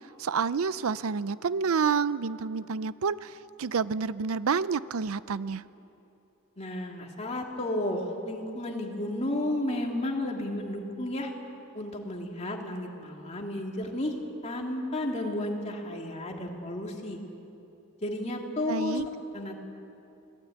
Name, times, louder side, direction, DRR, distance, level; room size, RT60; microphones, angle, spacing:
voice 1, 0.2-5.6 18.7-19.1, right 5 dB, 70° right, 16 dB, 0.5 m, -29 dB
voice 2, 6.6-11.3 11.7-14.1 14.4-17.2 18.0-19.0 19.3-19.6, left 1 dB, 30° left, 1 dB, 2.6 m, -32 dB
24.5 x 18.0 x 9.3 m, 2.8 s
head